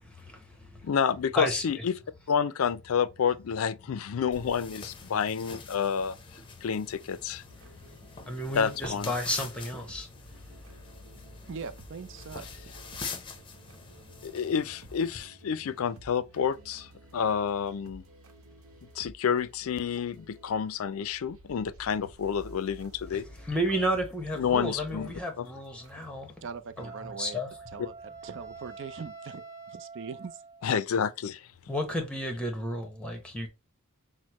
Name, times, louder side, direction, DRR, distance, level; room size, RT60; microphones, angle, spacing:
voice 1, 0.0-0.9 1.3-1.6 7.7-10.1 23.1-26.3 26.8-27.5 31.7-33.5, equal, 5° left, 1.0 m, -32 dB
voice 2, 0.8-2.0 2.3-6.2 6.6-7.4 8.5-9.1 14.2-18.0 19.0-23.2 24.4-25.5 30.6-31.5, left 7 dB, 70° left, 0.4 m, -29 dB
sound 1, 4.3-15.3, left 4 dB, 25° left, 0.7 m, -45 dB
sound 2, 7.5-26.2, equal, 75° right, 0.9 m, -52 dB
voice 3, 11.5-12.4 26.4-27.4 27.7-27.9 28.2-30.4, right 5 dB, 60° right, 0.5 m, -41 dB
Wind instrument woodwind instrument, 26.8-30.7, right 4 dB, 15° right, 0.6 m, -46 dB
6.3 x 2.1 x 2.9 m
head